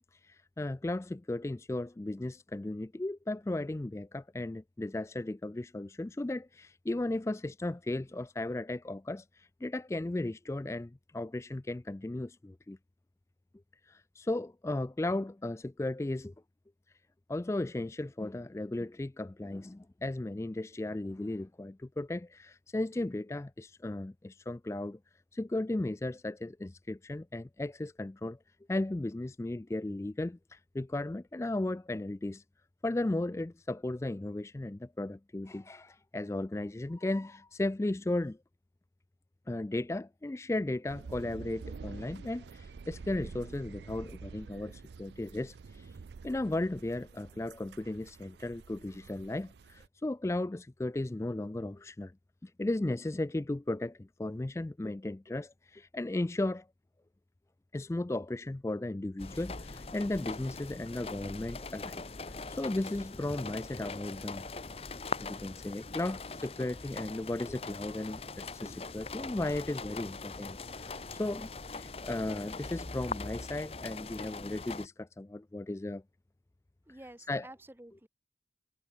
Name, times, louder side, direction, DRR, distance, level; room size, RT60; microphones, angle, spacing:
voice 1, 0.0-12.8 13.8-16.3 17.3-25.0 25.3-28.4 28.7-32.4 32.8-38.4 39.5-45.9 46.2-52.1 52.4-56.7 57.7-64.5 65.2-76.0 77.3-77.5, left 2 dB, 15° left, 0.3 m, -35 dB
sound 1, 40.9-49.9, right 4 dB, 75° right, 0.4 m, -48 dB
sound 2, 59.2-74.9, left 3 dB, 35° left, 1.0 m, -42 dB
voice 2, 76.9-78.1, right 1 dB, 15° right, 0.7 m, -50 dB
head